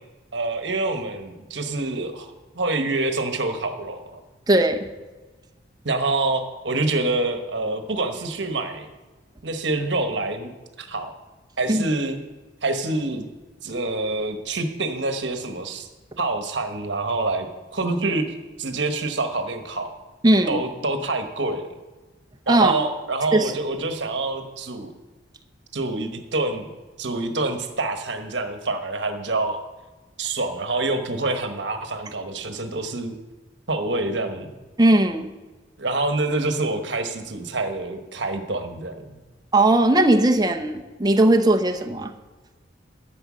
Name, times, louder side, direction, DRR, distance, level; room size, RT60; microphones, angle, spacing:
voice 1, 0.3-4.2 5.8-8.9 9.4-11.1 11.6-12.2 12.6-13.2 13.6-15.9 16.2-17.5 17.7-18.2 18.6-19.9 20.5-21.8 22.5-24.9 25.7-26.7 27.0-29.6 30.2-33.2 33.7-34.5 35.8-39.2, right 2 dB, 65° right, 6 dB, 1.3 m, -26 dB
voice 2, 4.5-4.9 11.7-11.9 20.2-20.6 22.5-22.8 23.3-23.5 34.8-35.3 39.5-42.1, right 1 dB, 20° right, 4 dB, 0.8 m, -18 dB
12.5 x 7.9 x 6.3 m, 1.2 s
head